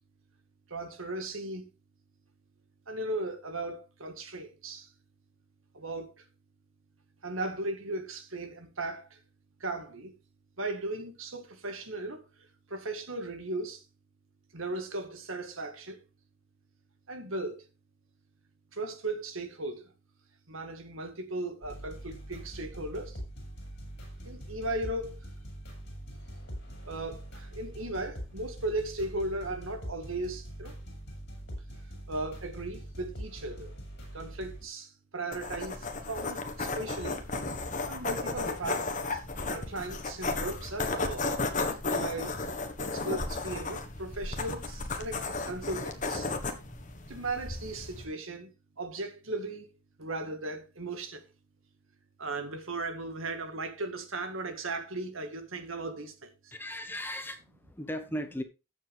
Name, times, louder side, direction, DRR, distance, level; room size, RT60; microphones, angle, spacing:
voice 1, 0.7-1.7 2.9-4.9 5.7-6.3 7.2-9.2 9.6-10.1 10.6-13.8 14.5-16.0 17.1-17.6 18.7-19.9 20.5-23.2 24.3-25.3 26.9-30.8 32.1-33.7 34.1-37.2 37.9-39.2 39.5-41.3 41.9-42.4 42.8-46.3 47.1-48.5 48.8-49.7 50.0-51.3 52.2-56.5, right 2 dB, 75° right, 1.9 m, -37 dB
sound 1, 21.6-34.6, right 1 dB, 55° left, 5.8 m, -43 dB
sound 2, 35.3-48.0, left 3 dB, 40° left, 1.5 m, -34 dB
voice 2, 56.5-58.4, equal, 10° left, 1.0 m, -37 dB
14.0 x 7.4 x 3.5 m
head